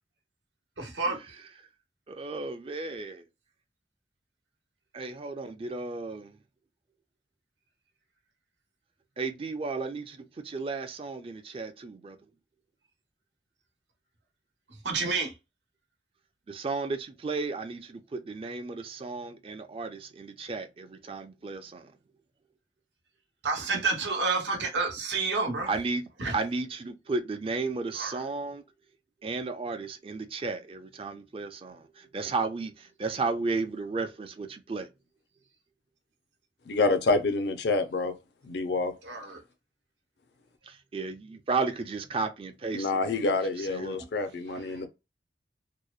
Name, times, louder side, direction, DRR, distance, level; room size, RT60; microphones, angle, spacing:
voice 1, 0.8-1.2 14.8-15.3 23.4-25.7 26.2-26.3 28.0-28.2 39.0-39.4 44.7-44.8, right 4 dB, 90° right, 0.9 m, -29 dB
voice 2, 2.1-3.2 4.9-6.4 9.2-12.2 16.5-21.9 25.7-26.0 26.3-28.6 29.2-34.9 40.6-44.0, right 3 dB, 30° right, 0.4 m, -34 dB
voice 3, 36.7-38.1 38.5-38.9 42.7-44.9, left 3 dB, 70° left, 0.4 m, -27 dB
2.8 x 2.0 x 2.3 m
head